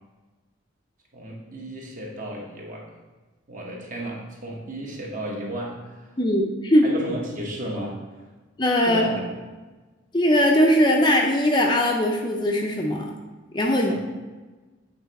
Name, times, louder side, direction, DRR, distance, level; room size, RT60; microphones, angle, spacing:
voice 1, 1.1-2.9 3.5-6.1 6.8-8.3 8.8-9.2 13.9-14.0, right 1 dB, 40° right, -2 dB, 1.1 m, -34 dB
voice 2, 6.2-6.9 8.6-9.1 10.1-13.1 13.5-13.9, equal, 25° left, 1 dB, 0.5 m, -20 dB
8.1 x 3.3 x 4.1 m, 1.3 s
head